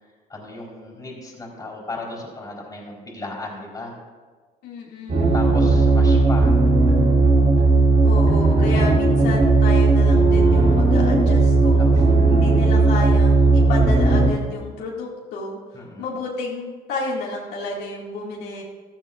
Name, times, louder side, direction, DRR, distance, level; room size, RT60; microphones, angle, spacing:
voice 1, 0.3-4.0 5.3-6.6 11.8-12.1 15.7-16.1, left 2 dB, 20° left, -2 dB, 4.0 m, -35 dB
voice 2, 4.6-5.3 8.0-11.9 12.3-15.6 16.0-18.6, left 2 dB, 85° left, -3 dB, 2.2 m, -31 dB
sound 1, 5.1-14.3, right 3 dB, 45° right, 3.6 m, -16 dB
14.5 x 14.0 x 2.5 m, 1.4 s
cardioid pair, 110°, 17 cm